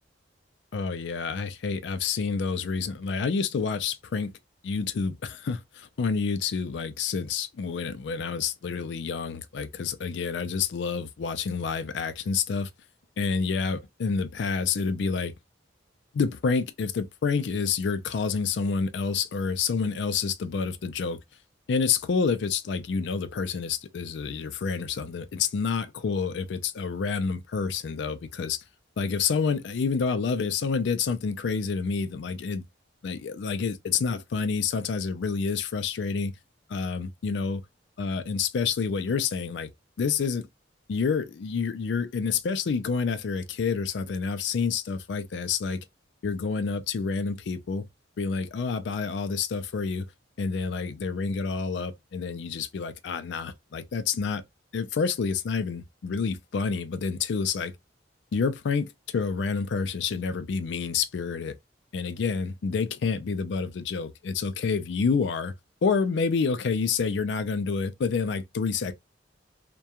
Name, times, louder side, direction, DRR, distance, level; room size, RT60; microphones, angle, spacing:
voice 1, 0.7-4.3 4.6-12.7 13.2-15.3 16.1-21.2 21.7-28.6 29.0-32.6 33.0-36.3 36.7-37.6 38.0-39.7 40.0-40.5 40.9-45.8 46.2-47.8 48.2-50.1 50.4-54.4 54.7-57.7 58.3-61.5 61.9-65.5 65.8-68.9, left 5 dB, 65° left, 0.4 m, -28 dB
2.3 x 2.2 x 2.8 m
head